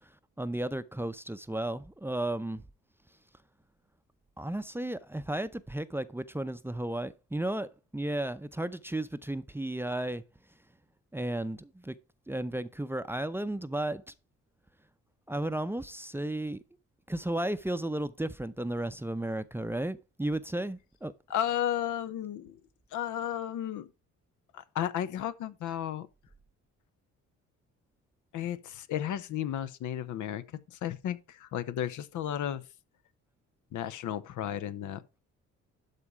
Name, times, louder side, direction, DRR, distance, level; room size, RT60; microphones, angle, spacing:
voice 1, 0.4-2.6 4.4-10.2 11.1-11.9 12.3-14.0 15.3-16.6 17.1-21.1, right 1 dB, 10° right, 0.6 m, -34 dB
voice 2, 21.3-22.6 22.9-23.9 24.5-26.1 28.3-32.6 33.7-35.0, left 10 dB, 80° left, 0.9 m, -33 dB
12.0 x 4.2 x 4.9 m
cardioid pair, 90°, 30 cm